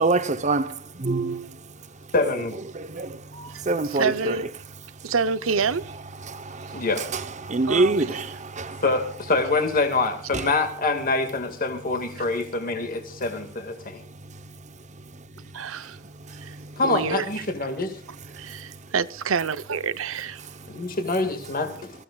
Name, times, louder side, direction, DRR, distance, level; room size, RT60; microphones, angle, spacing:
voice 1, 0.0-1.7 2.7-4.4 5.0-5.1 6.2-8.8 10.3-10.5 13.9-14.5 15.8-16.8 18.2-18.7 20.4-21.0, right 3 dB, 35° right, 0.8 m, -28 dB
voice 2, 2.1-2.6 6.7-7.0 8.8-14.0 16.8-18.0 20.7-21.9, left 3 dB, 45° left, 1.9 m, -25 dB
voice 3, 3.3-4.5 5.0-5.9 7.7-8.2 15.5-16.0 16.4-16.6 16.8-17.3 18.4-20.4, right 5 dB, 75° right, 0.7 m, -27 dB
25.0 x 15.0 x 2.4 m
head